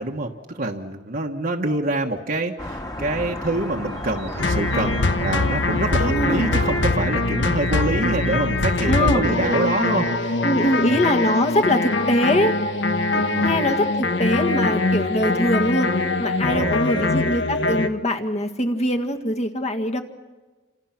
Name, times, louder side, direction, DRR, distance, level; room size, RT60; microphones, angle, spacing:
voice 1, 0.0-11.0 13.1-13.6 16.5-17.1, right 2 dB, 50° right, 0 dB, 1.4 m, -26 dB
sound 1, 2.6-6.9, left 1 dB, 20° left, 1.9 m, -33 dB
sound 2, 3.9-11.2, right 4 dB, 75° right, 2.1 m, -37 dB
sound 3, 4.4-17.9, left 2 dB, 70° left, 1.3 m, -22 dB
voice 2, 6.0-6.5 8.9-9.3 10.4-12.6 13.4-15.9 16.2-20.0, left 1 dB, 40° left, 7 dB, 1.8 m, -22 dB
28.5 x 27.5 x 6.0 m, 1.3 s
head